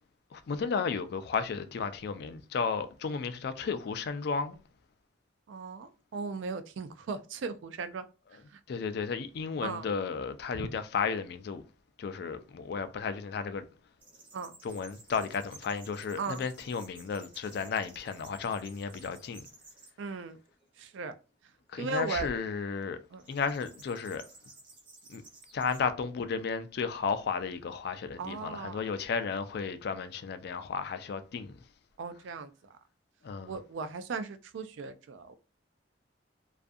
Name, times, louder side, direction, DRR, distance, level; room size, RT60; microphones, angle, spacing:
voice 1, 0.3-4.6 8.7-11.6 12.0-13.6 14.6-19.4 21.7-23.0 23.3-24.2 25.1-25.2 25.5-31.6 33.2-33.6, left 5 dB, 60° left, 0.3 m, -33 dB
voice 2, 5.5-8.0 8.3-8.6 9.6-9.9 10.6-10.7 14.3-14.5 16.2-16.4 20.0-20.4 20.8-21.1 21.8-22.3 23.1-23.2 28.2-28.8 32.0-32.8 33.5-35.3, right 4 dB, 80° right, 0.3 m, -37 dB
sound 1, 14.0-19.9 20.5-21.0 23.2-25.8, right 3 dB, 25° right, 0.6 m, -54 dB
2.6 x 2.4 x 2.4 m
head